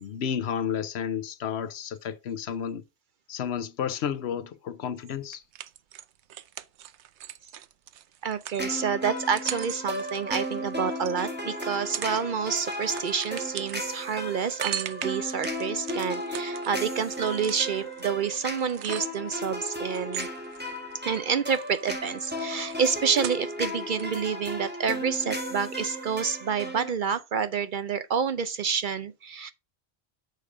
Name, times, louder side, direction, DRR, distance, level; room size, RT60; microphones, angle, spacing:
voice 1, 0.0-2.8 3.3-5.4, left 8 dB, 75° left, 0.9 m, -31 dB
sound 1, 5.3-11.2 11.6-12.2 12.5-19.4 19.9-21.2 21.5-23.7 24.0-24.1, right 11 dB, 85° right, 0.9 m, -39 dB
voice 2, 8.2-20.3 21.0-29.5, right 6 dB, 55° right, 0.6 m, -28 dB
sound 2, 8.6-26.9, equal, 10° right, 1.8 m, -35 dB
6.6 x 5.0 x 4.9 m
omnidirectional pair, 1.1 m